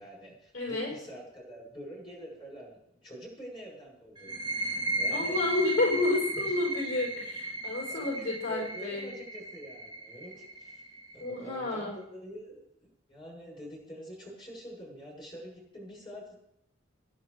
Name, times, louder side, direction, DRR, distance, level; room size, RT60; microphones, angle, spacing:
voice 1, 0.0-5.4 6.3-6.5 7.9-10.8 11.1-16.3, equal, 25° left, -5 dB, 7.8 m, -46 dB
voice 2, 0.5-0.9 5.1-9.1 11.2-12.0, left 2 dB, 80° left, -3 dB, 5.1 m, -30 dB
sound 1, 4.2-11.6, right 2 dB, 20° right, 2.3 m, -35 dB
26.5 x 10.5 x 3.5 m, 0.77 s
head